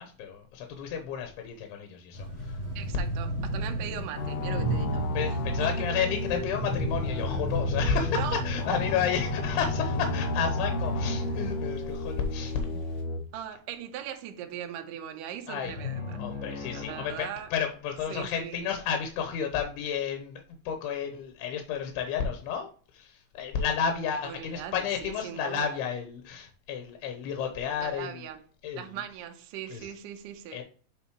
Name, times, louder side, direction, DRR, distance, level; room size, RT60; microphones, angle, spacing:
voice 1, 0.0-2.6 5.1-12.8 15.5-15.7 16.2-28.2 28.6-29.0 29.7-29.9 30.5-30.6, left 7 dB, 90° left, 2.9 m, -32 dB
sound 1, 2.1-5.2 7.0-12.7 15.6-18.1, left 2 dB, 50° left, 1.6 m, -35 dB
sound 2, 2.1-13.0, right 1 dB, 45° right, 2.3 m, -36 dB
voice 2, 2.8-6.0 8.1-8.4 13.3-16.2 16.7-17.5 18.1-18.6 24.2-24.7 25.0-25.8 27.8-28.4 28.7-30.6, right 10 dB, 75° right, 2.1 m, -40 dB
sound 3, 4.2-13.2, left 2 dB, 75° left, 1.6 m, -33 dB
9.1 x 3.9 x 3.0 m
omnidirectional pair, 4.5 m